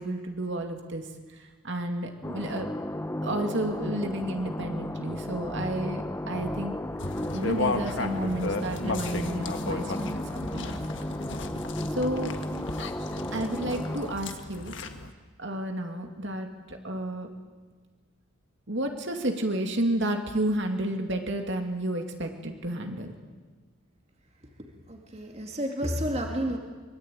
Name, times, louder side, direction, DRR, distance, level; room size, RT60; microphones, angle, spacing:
voice 1, 0.0-2.7 3.2-6.7 7.3-10.8 11.9-12.3 13.3-14.7 15.4-17.3 18.7-23.1, right 1 dB, 55° right, 4 dB, 2.7 m, -31 dB
sound 1, 2.2-14.2, left 1 dB, 10° left, 0.8 m, -34 dB
sound 2, 7.0-15.1, left 2 dB, 55° left, 1.7 m, -34 dB
voice 2, 24.9-26.6, equal, 30° right, 2 dB, 2.3 m, -30 dB
24.0 x 23.0 x 9.3 m, 1.4 s
head